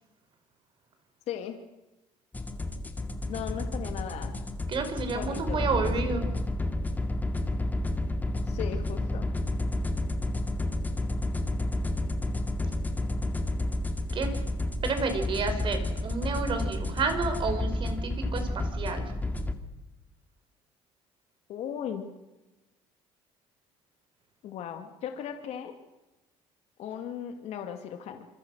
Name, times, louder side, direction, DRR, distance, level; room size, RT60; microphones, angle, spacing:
voice 1, 1.3-1.6 3.3-4.3 5.1-6.1 8.5-9.3 21.5-22.0 24.4-25.7 26.8-28.3, left 9 dB, 65° left, 5 dB, 2.5 m, -37 dB
sound 1, 2.3-19.5, left 1 dB, 15° left, 2.2 m, -31 dB
voice 2, 4.7-6.3 14.1-14.4 14.8-19.1, right 4 dB, 45° right, 7 dB, 5.1 m, -30 dB
26.5 x 22.5 x 6.4 m, 1.0 s
cardioid pair, 105°, 12 cm